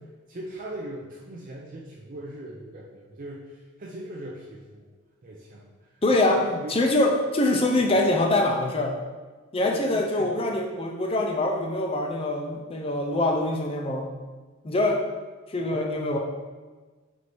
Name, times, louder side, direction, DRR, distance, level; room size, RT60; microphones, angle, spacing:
voice 1, 0.3-4.8 5.2-6.0 6.4-6.8 9.6-10.4 15.5-16.2, right 1 dB, 40° right, -3 dB, 0.4 m, -39 dB
voice 2, 6.0-9.0 9.5-14.1 14.6-15.0 15.5-16.2, left 2 dB, 25° left, 2 dB, 0.4 m, -24 dB
4.3 x 2.7 x 4.5 m, 1.4 s
head